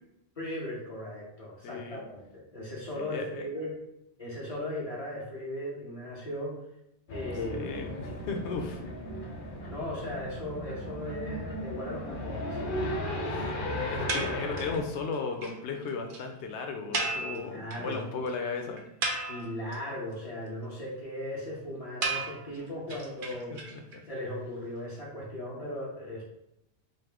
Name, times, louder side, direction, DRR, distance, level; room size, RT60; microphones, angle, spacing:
voice 1, 0.4-2.2 2.5-3.7 4.2-6.6 7.1-7.7 8.0-8.1 9.6-13.5 14.0-14.8 17.2-18.0 19.3-23.6 24.1-26.2, left 1 dB, 35° left, -5 dB, 1.4 m, -38 dB
voice 2, 1.6-2.0 3.0-3.5 7.5-8.8 13.3-13.5 13.9-18.8 23.7-24.0, left 4 dB, 90° left, 4 dB, 0.9 m, -36 dB
sound 1, 7.1-14.8, left 1 dB, 55° left, 0.8 m, -35 dB
sound 2, 14.1-14.8 15.1-15.2 15.4-15.5 15.8-15.9 16.1-16.2 16.9-17.9 18.3-18.4 18.8-19.8 22.0-24.0, right 3 dB, 55° right, 0.8 m, -34 dB
5.3 x 2.0 x 3.5 m, 0.83 s
omnidirectional pair, 1.1 m